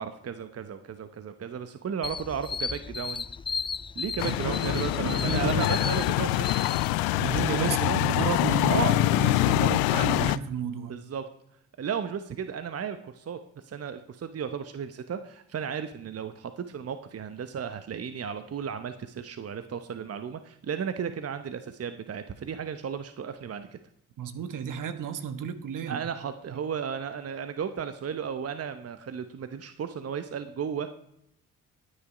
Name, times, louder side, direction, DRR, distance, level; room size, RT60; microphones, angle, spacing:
voice 1, 0.0-3.2 4.0-6.6 7.1-8.2 8.6-9.0 10.9-11.2 11.8-23.8 25.9-30.9, right 7 dB, 40° right, 10 dB, 0.9 m, -34 dB
sound 1, 2.0-7.4, left 5 dB, 15° left, 0.3 m, -35 dB
sound 2, 4.2-10.4, left 17 dB, 80° left, 0.5 m, -25 dB
voice 2, 4.3-5.7 7.2-10.9 24.2-26.0 26.5-26.6, right 7 dB, 60° right, 10 dB, 1.3 m, -32 dB
11.0 x 9.6 x 5.1 m, 0.77 s
hypercardioid pair, 50°, 36 cm